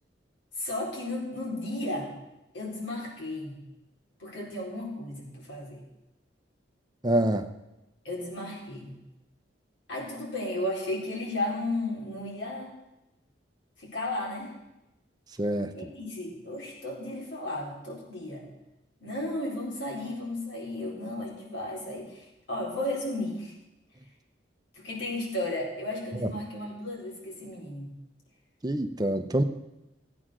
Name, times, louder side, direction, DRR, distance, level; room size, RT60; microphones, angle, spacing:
voice 1, 0.6-2.1 2.5-3.6 4.2-5.8 8.0-9.0 9.9-12.7 13.8-14.5 15.7-18.4 19.0-23.5 24.7-27.9, left 1 dB, 80° left, -3 dB, 4.2 m, -34 dB
voice 2, 7.0-7.5 15.4-15.7 26.2-26.3 28.6-29.4, right 1 dB, 20° right, 7 dB, 0.7 m, -26 dB
15.5 x 8.6 x 6.2 m, 0.95 s
head